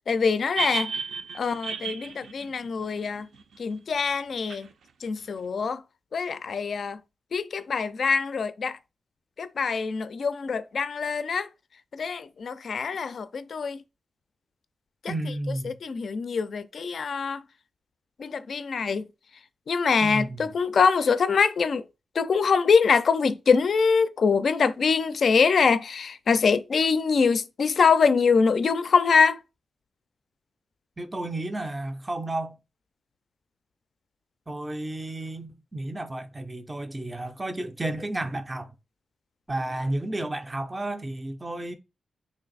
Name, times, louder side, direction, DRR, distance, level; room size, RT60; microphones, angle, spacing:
voice 1, 0.1-0.9 1.3-3.3 3.6-4.7 5.0-5.8 6.1-7.0 7.3-8.8 9.4-11.5 11.9-13.8 15.6-17.4 18.2-19.1 19.7-21.8 22.2-29.4, left 5 dB, 55° left, 0.3 m, -24 dB
sound 1, 0.6-3.6 4.5-4.6, right 5 dB, 80° right, 0.5 m, -33 dB
voice 2, 15.1-15.8 20.0-20.5 31.0-32.6 34.5-38.7 39.5-41.8, right 2 dB, 15° right, 0.4 m, -32 dB
3.2 x 2.5 x 3.9 m
wide cardioid pair, 125°, 0 cm